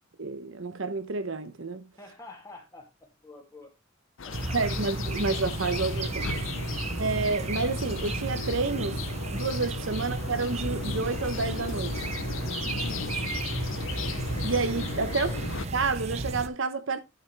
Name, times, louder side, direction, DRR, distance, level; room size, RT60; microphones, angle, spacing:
voice 1, 0.2-1.9 4.5-6.3 7.0-11.9 14.4-15.3 15.7-17.0, right 3 dB, 70° right, 0.9 m, -29 dB
voice 2, 2.0-2.9 3.2-3.7 4.2-4.9 15.1-15.5, left 2 dB, 15° left, 2.5 m, -49 dB
sound 1, 4.2-15.7, left 5 dB, 70° left, 0.7 m, -37 dB
sound 2, 4.3-16.5, right 2 dB, 30° right, 0.6 m, -33 dB
11.0 x 5.8 x 3.4 m
head